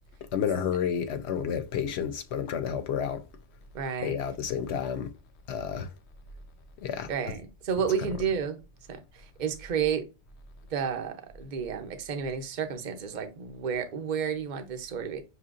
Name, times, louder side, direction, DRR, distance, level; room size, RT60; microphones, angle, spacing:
voice 1, 0.3-3.2 4.0-5.1 5.5-5.9 6.8-7.1, left 8 dB, 75° left, 0.8 m, -30 dB
voice 2, 3.7-4.2 7.1-8.6 8.9-10.1 10.7-15.2, right 7 dB, 45° right, 0.8 m, -31 dB
6.2 x 2.8 x 2.4 m
omnidirectional pair, 1.2 m